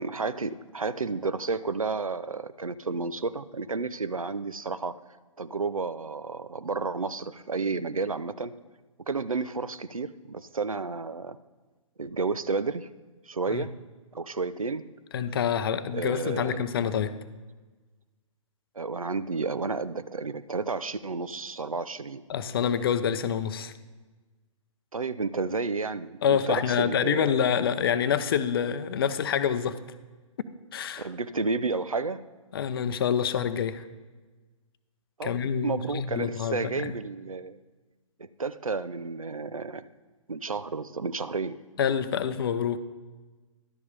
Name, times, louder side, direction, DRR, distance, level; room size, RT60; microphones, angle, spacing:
voice 1, 0.0-5.0 5.4-8.5 9.1-11.4 12.0-12.9 13.3-13.7 14.1-14.9 15.9-16.6 18.8-22.3 24.9-27.3 31.0-32.3 35.2-37.6 38.2-39.8 40.3-41.6, right 4 dB, 90° right, 14 dB, 0.5 m, -31 dB
voice 2, 15.1-17.1 22.3-23.7 26.2-29.8 30.7-31.1 32.5-33.8 35.2-36.9 41.8-42.8, left 8 dB, 45° left, 12 dB, 0.5 m, -27 dB
11.5 x 5.4 x 5.2 m, 1.3 s
figure-of-eight pair, 125°, 17 cm